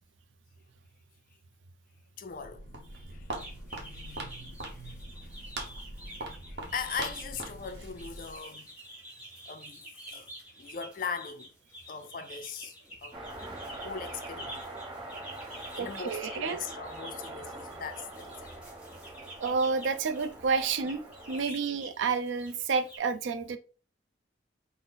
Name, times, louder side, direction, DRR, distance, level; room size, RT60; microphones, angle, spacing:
voice 1, 2.2-4.2 4.7-5.0 5.2-5.3 6.1-8.7 9.5-10.3 10.6-11.5 11.8-12.7 13.0-13.2 13.8-14.6 15.5-18.5, left 6 dB, 45° left, 0.4 m, -40 dB
Walk footsteps, 2.3-8.4, right 2 dB, 60° right, 0.8 m, -42 dB
sound 1, 3.3-23.0, right 1 dB, 5° right, 1.1 m, -48 dB
sound 2, 13.1-21.4, right 2 dB, 25° right, 0.8 m, -43 dB
voice 2, 15.8-16.6 19.4-21.0 21.3-23.6, right 5 dB, 80° right, 0.4 m, -30 dB
4.0 x 2.0 x 3.8 m
head